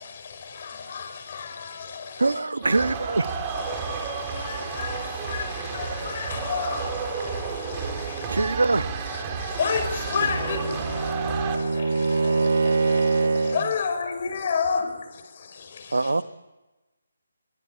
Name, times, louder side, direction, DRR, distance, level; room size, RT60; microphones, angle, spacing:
voice 1, 0.9-1.5 1.8-1.9 4.4-5.0 5.3-6.9 9.6-10.7 13.5-14.8, left 5 dB, 40° left, 5.3 m, -28 dB
voice 2, 2.2-3.3 8.3-8.8 15.9-16.2, right 3 dB, 75° right, 1.1 m, -23 dB
sound 1, 2.6-11.6, right 5 dB, 20° right, 4.0 m, -32 dB
Bowed string instrument, 9.8-13.7, right 4 dB, 60° right, 2.4 m, -24 dB
voice 3, 10.1-12.1, left 2 dB, 10° left, 5.1 m, -45 dB
25.0 x 23.5 x 8.7 m
figure-of-eight pair, 150°, 0 cm